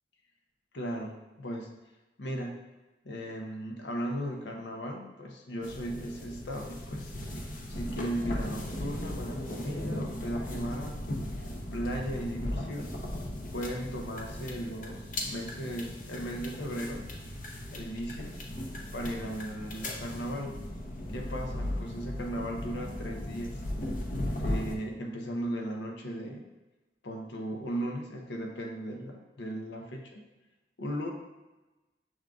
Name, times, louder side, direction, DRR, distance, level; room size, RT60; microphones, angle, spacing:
voice 1, 0.7-1.7 2.2-2.7 3.0-7.1 7.7-11.3 11.7-13.0 13.5-17.2 17.7-18.4 18.9-20.6 21.1-23.6 24.3-26.4 27.0-30.2 30.8-31.1, equal, 90° left, 2 dB, 0.7 m, -37 dB
sound 1, 5.6-24.7, left 1 dB, 50° left, 0.7 m, -37 dB
6.1 x 3.7 x 2.3 m, 1.1 s
head